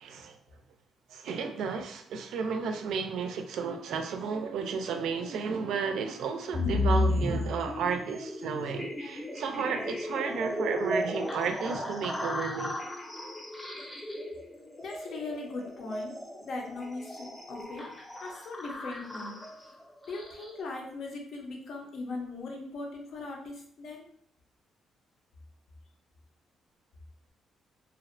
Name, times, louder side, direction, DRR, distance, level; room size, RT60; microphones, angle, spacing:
voice 1, 0.0-0.4 1.1-12.7, right 5 dB, 75° right, 6 dB, 0.3 m, -33 dB
sound 1, 6.5-20.6, left 2 dB, 10° left, 0.5 m, -34 dB
voice 2, 14.8-17.9 18.2-19.7 20.1-24.1, left 3 dB, 65° left, 0 dB, 0.6 m, -40 dB
2.5 x 2.1 x 2.5 m, 0.63 s
cardioid pair, 90°, 0 cm